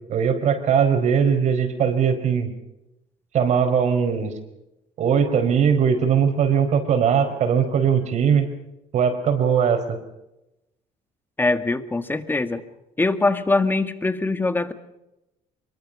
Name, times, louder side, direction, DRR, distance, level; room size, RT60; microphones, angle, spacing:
voice 1, 0.1-2.5 3.3-4.3 5.0-8.5 8.9-10.0, right 7 dB, 60° right, 8 dB, 4.7 m, -20 dB
voice 2, 11.4-12.6 13.0-14.7, left 2 dB, 15° left, 10 dB, 1.8 m, -22 dB
24.5 x 23.5 x 5.4 m, 0.92 s
cardioid pair, 105°, 14 cm